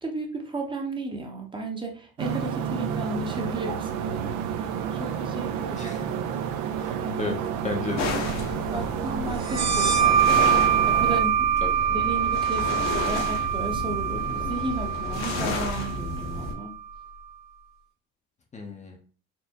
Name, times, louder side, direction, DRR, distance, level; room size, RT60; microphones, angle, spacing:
voice 1, 0.0-5.9 7.0-7.4 8.7-10.4 10.9-11.6 11.9-16.7, right 2 dB, 15° right, 2 dB, 0.7 m, -34 dB
sound 1, 2.2-11.2, right 8 dB, 75° right, 0.5 m, -30 dB
voice 2, 5.7-6.1 6.7-7.4 7.6-8.1 11.6-11.7 18.5-19.0, left 4 dB, 25° left, 2 dB, 0.6 m, -33 dB
sound 2, 8.0-16.5, left 3 dB, 65° left, 0.9 m, -32 dB
sound 3, 9.4-16.7, right 8 dB, 35° right, 1.1 m, -24 dB
4.4 x 2.1 x 2.8 m, 0.40 s
cardioid pair, 110°, 30 cm